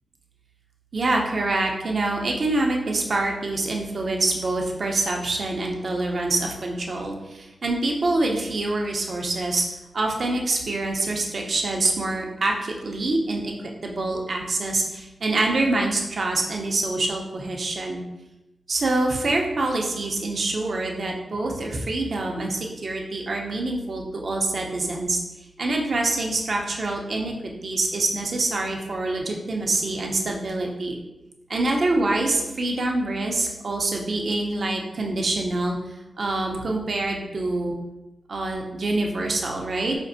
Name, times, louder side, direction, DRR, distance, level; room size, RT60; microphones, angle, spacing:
voice 1, 0.9-9.6 9.9-13.5 13.8-18.0 18.7-25.2 25.6-27.3 27.6-31.0 31.5-35.8 36.2-37.7 38.3-40.0, right 2 dB, 60° right, 0 dB, 0.6 m, -25 dB
5.1 x 2.6 x 2.6 m, 0.98 s
wide cardioid pair, 80°, 0 cm